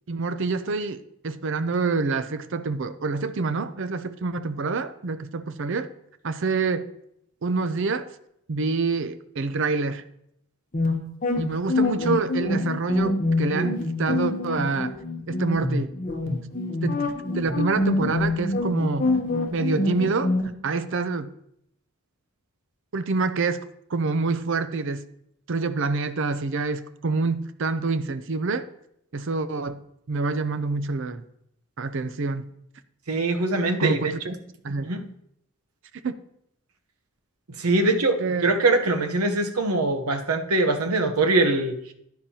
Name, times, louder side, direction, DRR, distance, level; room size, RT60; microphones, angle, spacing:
voice 1, 0.1-5.9 6.2-6.9 7.4-8.1 8.5-10.0 11.4-14.9 15.3-15.9 16.3-16.4 16.8-17.1 17.3-19.1 19.5-20.3 20.6-21.3 22.9-23.6 23.9-25.0 25.5-28.6 29.1-29.8 30.1-31.2 31.8-32.5 33.8-34.3 34.6-34.9 36.0-36.1 37.8-38.5, right 3 dB, 55° right, 13 dB, 0.5 m, -27 dB
sound 1, 10.7-20.5, left 2 dB, 35° left, 0.9 m, -25 dB
voice 2, 33.1-34.1 34.8-35.0 37.6-38.2 38.4-41.9, right 2 dB, 90° right, 7 dB, 0.9 m, -22 dB
10.5 x 10.0 x 2.8 m, 0.74 s
head